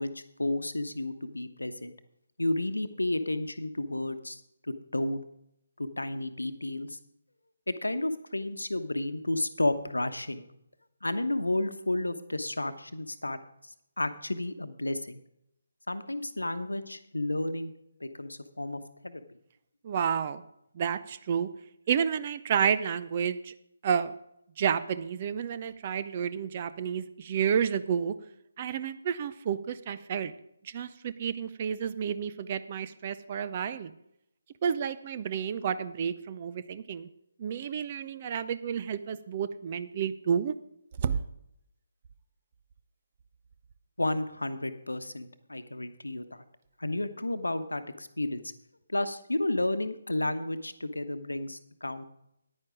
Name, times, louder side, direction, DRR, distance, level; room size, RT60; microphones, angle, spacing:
voice 1, 0.0-1.9 2.4-4.4 4.7-5.2 5.8-7.0 7.7-10.4 11.0-15.2 15.9-17.7 18.0-19.2 44.0-46.4 46.8-48.4 48.9-52.1, left 1 dB, 75° left, 11 dB, 1.0 m, -32 dB
voice 2, 19.8-20.4 20.8-21.5 21.9-23.5 23.8-24.2 24.6-28.1 28.6-30.3 30.6-33.9 34.6-37.1 37.4-40.5 41.0-41.2, right 7 dB, 30° right, 13 dB, 0.6 m, -30 dB
9.9 x 9.7 x 5.1 m, 0.78 s
figure-of-eight pair, 145°, 0 cm